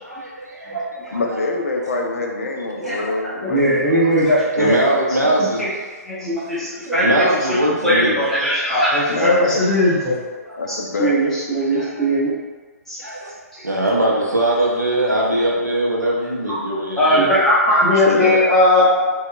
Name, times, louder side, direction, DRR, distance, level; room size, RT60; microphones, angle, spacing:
voice 1, 0.0-1.4 1.8-1.9 2.8-2.9 3.9-5.6 7.0-8.2 10.5-10.8 11.7-12.2 13.0-13.3 13.6-17.3, right 1 dB, 85° right, -4 dB, 0.6 m, -22 dB
voice 2, 1.1-3.9 9.1-9.6 10.6-11.1 18.0-18.4, left 3 dB, 60° left, 1 dB, 0.4 m, -24 dB
voice 3, 3.4-4.8 5.6-5.7 6.0-7.3 7.8-10.2 10.7-12.3 12.9-13.0 16.5-16.6 17.0-19.1, equal, 5° left, -11 dB, 0.8 m, -18 dB
2.7 x 2.2 x 2.4 m, 1.3 s
figure-of-eight pair, 125°, 9 cm